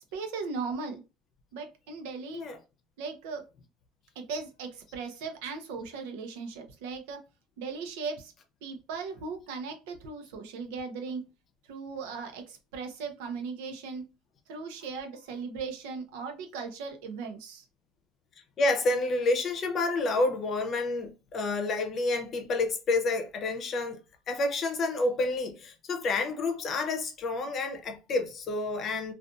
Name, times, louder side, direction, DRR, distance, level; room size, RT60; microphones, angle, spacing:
voice 1, 0.1-1.0 1.5-2.5 3.0-3.4 4.2-7.2 7.6-8.3 8.6-11.3 11.7-14.1 14.5-17.7, right 4 dB, 85° right, 0.6 m, -38 dB
voice 2, 18.6-24.0 24.3-29.1, left 2 dB, 40° left, 0.7 m, -29 dB
2.5 x 2.4 x 2.4 m
supercardioid pair, 115°, 0 cm